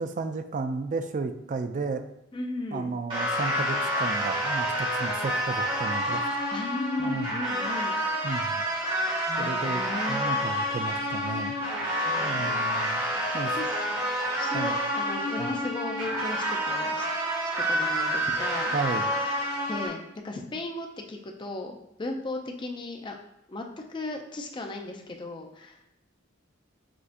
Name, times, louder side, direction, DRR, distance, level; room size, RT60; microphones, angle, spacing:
voice 1, 0.0-2.0 2.7-6.2 7.0-7.4 8.2-8.6 9.4-9.8 10.1-11.5 12.2-13.0 13.3-13.5 14.5-14.8 15.4-15.5 18.7-19.1, right 4 dB, 40° right, 8 dB, 0.3 m, -33 dB
voice 2, 2.3-2.9 6.5-8.0 9.3-10.3 12.0-12.4 13.5-13.7 14.4-17.1 17.7-18.7 19.7-23.2 23.5-25.8, left 2 dB, 25° left, 3 dB, 0.4 m, -36 dB
sound 1, 3.1-19.9, equal, 25° right, 1.4 m, -28 dB
6.1 x 2.7 x 2.5 m, 0.85 s
head